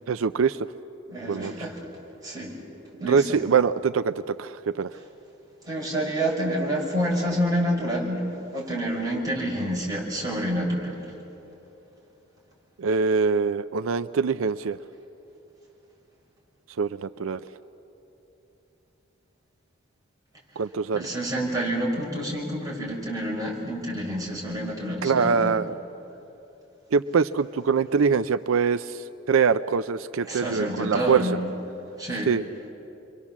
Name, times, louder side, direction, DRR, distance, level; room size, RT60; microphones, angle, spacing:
voice 1, 0.1-0.6 1.3-1.5 3.0-4.9 12.8-14.8 16.8-17.4 20.6-21.1 25.0-25.7 26.9-31.2 32.3-32.4, right 5 dB, 90° right, 12 dB, 0.5 m, -23 dB
voice 2, 1.1-1.8 2.2-2.5 3.0-3.4 5.6-11.1 20.9-25.5 30.3-31.4 32.0-32.3, equal, 20° right, -4 dB, 5.9 m, -28 dB
29.0 x 23.0 x 7.3 m, 3.0 s
head